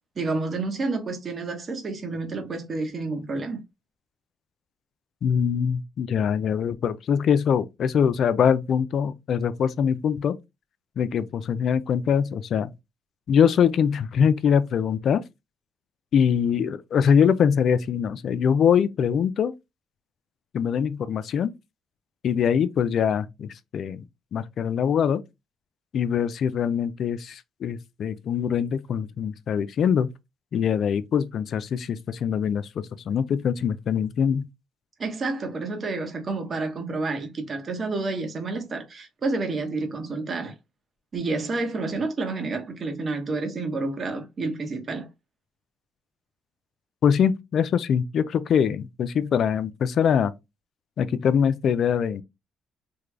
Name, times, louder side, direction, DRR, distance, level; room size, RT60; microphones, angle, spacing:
voice 1, 0.2-3.6 35.0-40.5 41.1-45.1, right 3 dB, 40° right, 1.0 m, -29 dB
voice 2, 5.2-10.4 11.0-12.7 13.3-15.2 16.1-19.5 20.5-21.5 22.2-24.0 24.3-25.2 25.9-30.1 30.5-32.7 33.1-34.4 47.0-50.3 51.0-52.2, left 7 dB, 60° left, 0.4 m, -23 dB
3.6 x 2.2 x 3.2 m
cardioid pair, 85°, 0 cm